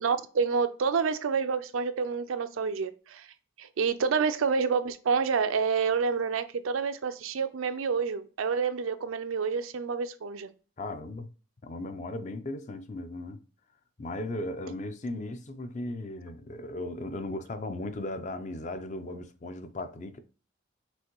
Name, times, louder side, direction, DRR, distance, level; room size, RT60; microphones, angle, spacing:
voice 1, 0.0-3.3 3.6-10.5 15.1-15.4, right 5 dB, 85° right, 0.5 m, -28 dB
voice 2, 10.8-11.3 11.6-13.4 14.0-20.2, left 2 dB, 35° left, 0.4 m, -37 dB
6.2 x 2.6 x 2.9 m
head